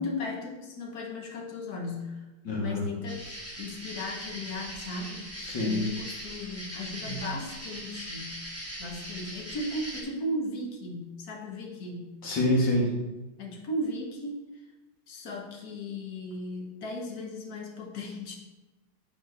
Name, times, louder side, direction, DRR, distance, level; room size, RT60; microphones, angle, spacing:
voice 1, 0.0-2.2 2.6-5.3 5.6-8.4 8.8-12.1 13.4-14.4 15.1-18.4, left 1 dB, 55° left, 1 dB, 1.5 m, -36 dB
voice 2, 2.4-2.8 5.4-5.8 7.0-7.2 12.2-12.9, left 1 dB, 70° left, -3 dB, 2.3 m, -26 dB
sound 1, 3.1-10.0, equal, 10° right, 1.2 m, -40 dB
8.5 x 4.3 x 4.1 m, 1.1 s
omnidirectional pair, 2.2 m